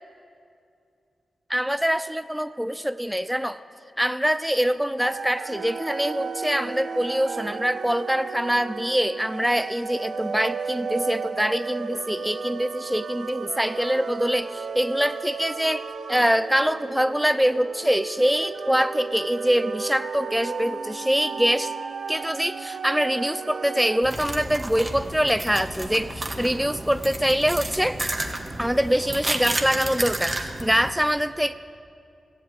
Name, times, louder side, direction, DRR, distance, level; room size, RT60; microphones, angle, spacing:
voice 1, 1.5-3.6 4.0-21.7 22.1-28.0 28.6-31.5, equal, 5° right, 12 dB, 0.4 m, -24 dB
sound 1, 5.0-24.0, right 5 dB, 85° right, 0.8 m, -34 dB
sound 2, 24.0-30.9, right 1 dB, 30° right, 1.5 m, -31 dB
14.5 x 8.0 x 8.8 m, 2.5 s
cardioid pair, 50°, 0 cm